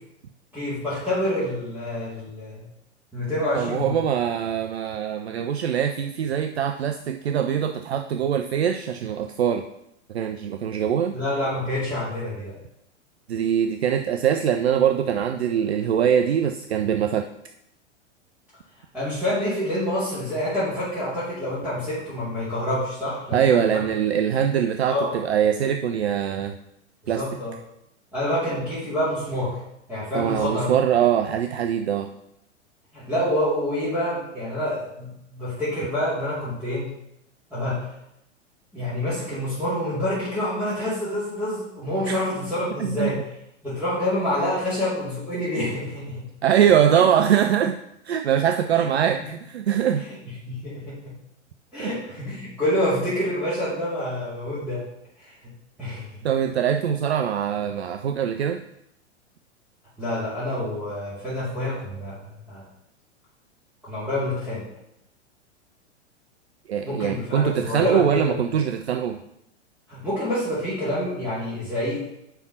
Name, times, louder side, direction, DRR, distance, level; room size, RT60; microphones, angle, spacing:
voice 1, 0.5-2.6 3.1-3.9 11.1-12.5 18.9-23.7 24.9-25.1 27.1-27.5 28.1-29.6 29.9-30.7 32.9-36.9 37.5-37.8 38.7-43.2 43.6-46.2 46.9-47.0 48.8-48.9 50.1-50.2 50.4-51.0 51.7-54.8 55.2-55.5 55.8-56.3 60.0-62.6 63.8-64.6 66.8-68.3 69.9-72.0, left 1 dB, 5° right, -12 dB, 2.4 m, -27 dB
voice 2, 3.5-9.6 10.1-11.1 13.3-17.3 23.3-26.6 27.1-27.2 30.1-32.1 42.1-42.2 42.8-43.1 46.4-47.8 48.0-50.0 51.8-52.0 56.2-58.6 66.7-69.2, right 9 dB, 60° right, 7 dB, 0.5 m, -23 dB
5.2 x 4.5 x 5.9 m, 0.80 s
figure-of-eight pair, 100°, 36 cm